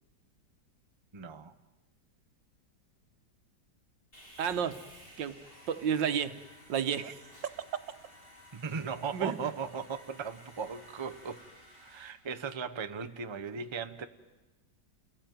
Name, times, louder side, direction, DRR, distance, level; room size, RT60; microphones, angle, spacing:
voice 1, 1.1-1.5 8.5-11.4 11.8-14.1, right 6 dB, 25° right, 9 dB, 0.6 m, -37 dB
Sawing, 4.1-12.1, equal, 30° left, 4.4 m, -55 dB
voice 2, 4.4-4.8 5.2-5.4 5.7-6.4 6.7-7.2 9.1-9.3, right 8 dB, 85° right, 10 dB, 1.8 m, -30 dB
30.0 x 18.5 x 9.4 m, 1.2 s
omnidirectional pair, 2.0 m